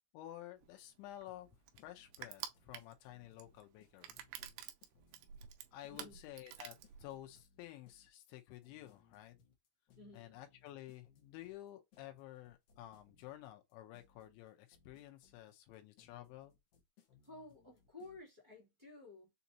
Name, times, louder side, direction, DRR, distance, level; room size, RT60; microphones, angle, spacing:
voice 1, 0.1-1.5 1.8-4.2 5.7-9.4 10.1-16.5, left 14 dB, 85° left, 3.1 m, -52 dB
Crushing, 0.6-7.4, right 10 dB, 90° right, 2.2 m, -50 dB
sound 1, 1.3-18.3, left 6 dB, 65° left, 2.4 m, -69 dB
voice 2, 5.9-6.3 9.9-10.4 17.2-19.3, left 2 dB, 20° right, 0.7 m, -54 dB
6.9 x 2.7 x 2.8 m
omnidirectional pair, 5.3 m